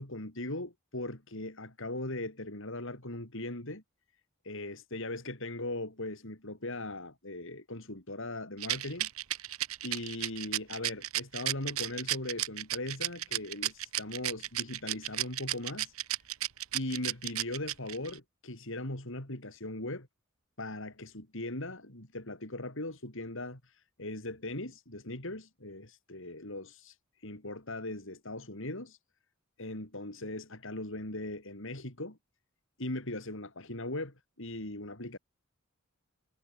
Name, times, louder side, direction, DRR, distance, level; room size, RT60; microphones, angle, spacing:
voice 1, 0.0-3.8 4.4-9.1 9.8-15.9 16.7-20.1 20.6-26.9 27.2-29.0 29.6-32.2 32.8-35.2, left 1 dB, 65° left, 4.9 m, -39 dB
Rattle, 8.6-18.2, right 14 dB, 80° right, 1.2 m, -33 dB
head